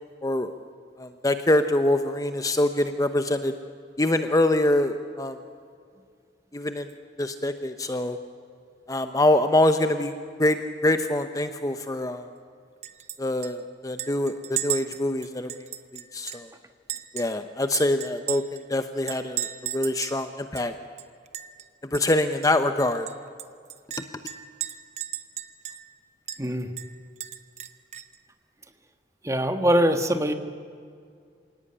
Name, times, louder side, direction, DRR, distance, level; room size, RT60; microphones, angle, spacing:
voice 1, 0.2-0.5 1.0-3.5 4.0-5.4 6.5-6.9 7.2-8.2 8.9-10.1 10.4-12.3 13.2-15.5 16.1-16.5 17.1-20.7 21.9-23.1, left 1 dB, 20° left, 8 dB, 0.8 m, -24 dB
Chink clink, 12.8-13.2 13.4-13.5 14.0-16.5 16.9-18.6 19.1-20.2 20.6-20.7 21.0-21.6 21.9-22.1 22.4-22.5 23.1-25.9 26.3-26.4 26.8-28.2, right 11 dB, 40° right, 1.0 m, -35 dB
voice 2, 26.4-26.7 29.2-30.3, equal, 15° right, 7 dB, 1.5 m, -22 dB
27.5 x 17.5 x 9.9 m, 2.2 s
head